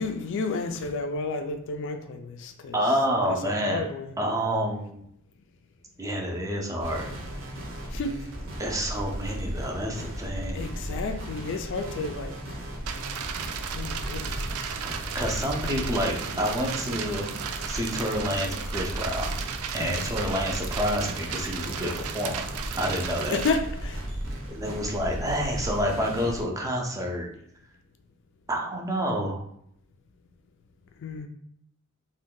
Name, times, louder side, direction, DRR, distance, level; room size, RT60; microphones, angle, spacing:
voice 1, 0.0-2.8 3.3-4.1 7.9-8.1 10.5-12.3 13.7-14.8 19.8-20.1 21.3-21.5 23.3-24.0 31.0-31.3, left 3 dB, 60° left, 7 dB, 0.3 m, -31 dB
voice 2, 2.7-3.8 4.2-5.0 6.0-7.1 8.6-10.7 14.7-17.3 17.7-19.4 19.7-22.5 22.8-23.4 24.5-27.3 28.5-29.4, equal, 15° right, 0 dB, 0.5 m, -28 dB
sound 1, 6.8-26.4, right 1 dB, 60° right, 0.7 m, -36 dB
sound 2, 12.9-23.6, right 8 dB, 90° right, 0.3 m, -35 dB
2.6 x 2.2 x 3.7 m, 0.71 s
head